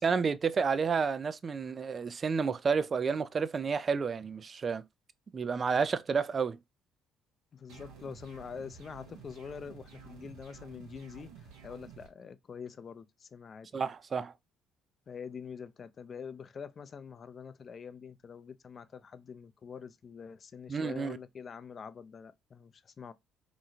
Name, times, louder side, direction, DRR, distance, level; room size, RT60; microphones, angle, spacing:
voice 1, 0.0-4.8 5.3-6.6 13.7-14.3 20.7-21.2, right 5 dB, 40° right, 0.3 m, -30 dB
voice 2, 7.5-13.7 15.1-23.1, left 6 dB, 45° left, 0.4 m, -45 dB
sound 1, 7.7-12.1, right 6 dB, 75° right, 0.9 m, -51 dB
2.9 x 2.3 x 2.7 m
hypercardioid pair, 55°, 0 cm